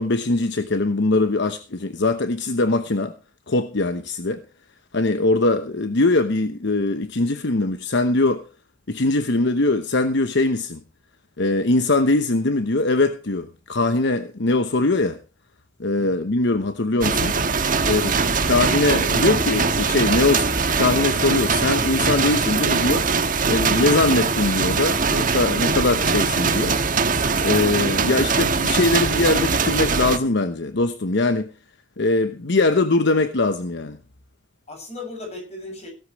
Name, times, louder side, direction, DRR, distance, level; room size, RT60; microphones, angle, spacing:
voice 1, 0.0-3.1 3.5-4.4 4.9-8.4 8.9-10.8 11.4-15.2 15.8-17.4 17.8-18.1 18.5-20.5 20.7-23.1 23.5-26.8 27.4-31.5 32.0-34.0, left 2 dB, 65° left, 1.0 m, -21 dB
sound 1, 17.0-30.2, right 4 dB, 45° right, 1.4 m, -21 dB
voice 2, 17.8-18.6 34.7-35.9, left 2 dB, 35° left, 7.1 m, -37 dB
17.0 x 12.5 x 3.2 m
head